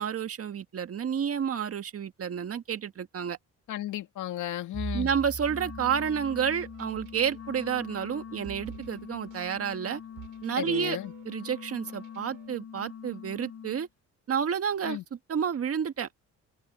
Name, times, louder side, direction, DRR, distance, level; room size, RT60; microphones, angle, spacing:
voice 1, 0.0-3.4 4.9-10.0 10.4-11.0 11.2-13.9 14.3-15.0 15.3-16.1, right 7 dB, 50° right, 1.7 m, -30 dB
voice 2, 3.7-5.1 10.5-11.1 14.8-15.0, left 13 dB, 80° left, 2.2 m, -34 dB
Bowed string instrument, 4.7-8.9, right 4 dB, 30° right, 4.7 m, -42 dB
Wind instrument woodwind instrument, 5.4-13.9, left 8 dB, 55° left, 6.2 m, -44 dB
sound 1, 6.5-12.5, right 14 dB, 85° right, 5.6 m, -52 dB
cardioid pair, 90°, 30 cm